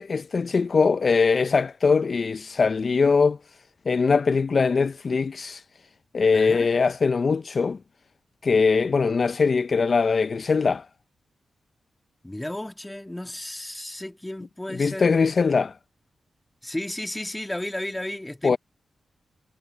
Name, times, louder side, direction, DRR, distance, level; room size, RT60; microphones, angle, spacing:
voice 1, 0.0-3.4 3.9-5.6 6.1-7.8 8.4-10.9 14.7-15.8 18.4-18.6, left 4 dB, 55° left, 0.6 m, -21 dB
voice 2, 6.3-6.7 12.2-15.1 16.6-18.6, left 1 dB, 15° left, 2.6 m, -33 dB
supercardioid pair, 45°, 0 cm